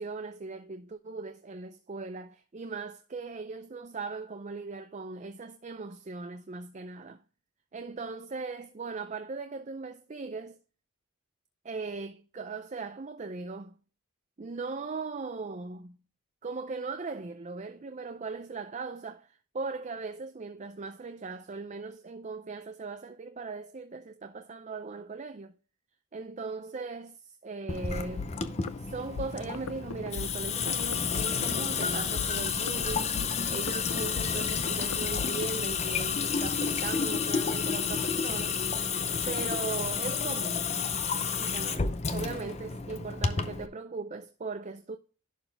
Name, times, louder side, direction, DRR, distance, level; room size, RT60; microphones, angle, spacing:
voice 1, 0.0-7.2 7.7-10.6 11.6-13.7 14.4-16.0 16.4-19.3 19.5-25.5 26.1-28.3 28.9-38.6 39.3-40.7 41.4-45.0, right 4 dB, 35° right, 0.4 m, -39 dB
Water tap faucet / Sink (filling or washing) / Drip, 27.7-43.7, left 6 dB, 30° left, 0.6 m, -31 dB
sound 1, 28.2-36.1, left 6 dB, 90° left, 0.5 m, -41 dB
11.0 x 4.1 x 3.4 m
head